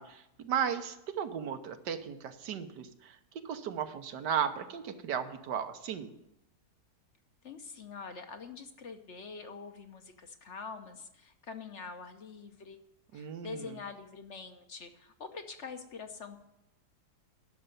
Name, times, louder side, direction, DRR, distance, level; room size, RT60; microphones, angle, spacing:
voice 1, 0.0-3.1 3.4-6.1 13.1-13.7, right 8 dB, 90° right, 8 dB, 1.6 m, -35 dB
voice 2, 7.4-12.8 13.1-16.4, left 5 dB, 50° left, 7 dB, 1.0 m, -45 dB
11.0 x 6.7 x 9.1 m, 0.85 s
omnidirectional pair, 1.8 m